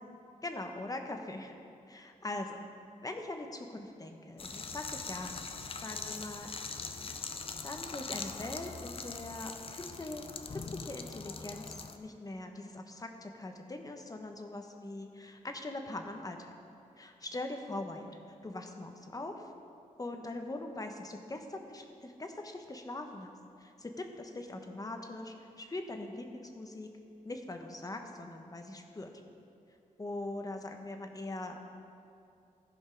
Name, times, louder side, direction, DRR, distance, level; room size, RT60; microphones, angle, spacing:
voice 1, 0.4-1.6 1.9-2.6 3.0-5.4 5.8-6.5 7.6-16.5 17.0-18.1 18.4-19.5 20.0-26.9 27.2-29.1 30.0-31.6, left 2 dB, 25° left, 4 dB, 1.1 m, -42 dB
sound 1, 4.4-12.0, left 4 dB, 40° left, 0.6 m, -42 dB
15.0 x 5.3 x 5.2 m, 2.6 s
cardioid pair, 85°, 14 cm